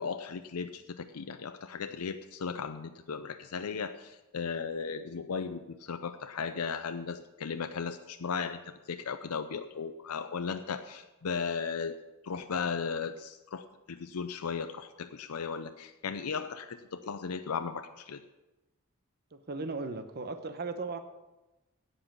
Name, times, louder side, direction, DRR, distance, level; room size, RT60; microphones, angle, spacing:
voice 1, 0.0-8.6 8.9-12.0 12.2-18.2, left 5 dB, 90° left, 8 dB, 0.6 m, -36 dB
voice 2, 19.3-21.0, right 3 dB, 45° right, 8 dB, 0.9 m, -37 dB
16.5 x 5.6 x 6.9 m, 1.0 s
head